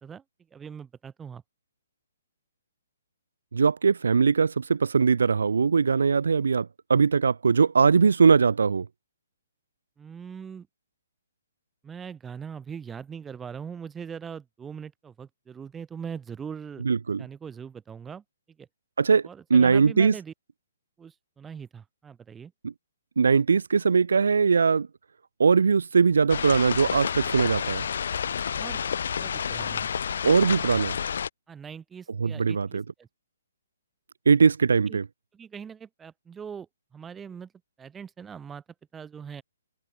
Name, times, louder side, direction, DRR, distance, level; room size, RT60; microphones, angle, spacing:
voice 1, 0.5-1.4 10.0-10.7 11.8-16.8 17.2-18.2 18.6-18.7 19.2-20.3 21.0-22.5 28.5-28.8 29.2-29.9 31.5-33.1 34.9-35.0 35.3-37.5 37.8-38.6 38.9-39.4, right 7 dB, 10° right, 3.7 m, -41 dB
voice 2, 3.5-8.9 16.8-17.2 19.0-19.2 19.5-20.1 22.6-22.7 23.2-24.9 25.4-27.8 30.2-30.9 32.2-32.8 34.3-35.0, right 5 dB, 85° right, 1.0 m, -21 dB
sound 1, 26.3-31.3, left 7 dB, 65° left, 4.8 m, -29 dB
hypercardioid pair, 165°, 0 cm